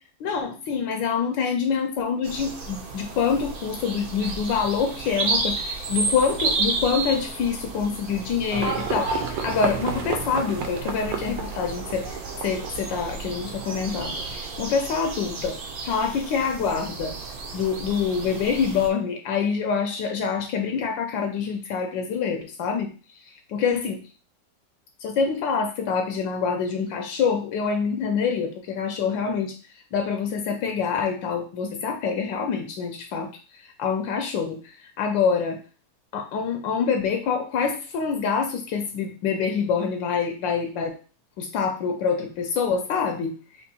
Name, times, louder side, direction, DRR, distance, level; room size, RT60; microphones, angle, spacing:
voice 1, 0.2-15.6 15.8-17.1 17.5-22.9 23.5-24.0 25.0-29.5 29.9-35.6 36.1-40.9 41.4-43.4, left 6 dB, 85° left, 4 dB, 1.3 m, -26 dB
sound 1, 2.2-18.9, right 3 dB, 60° right, 1.2 m, -32 dB
Livestock farm animals working animals, 8.5-14.6, right 5 dB, 85° right, 1.4 m, -32 dB
3.6 x 3.0 x 4.1 m, 0.36 s
omnidirectional pair, 2.0 m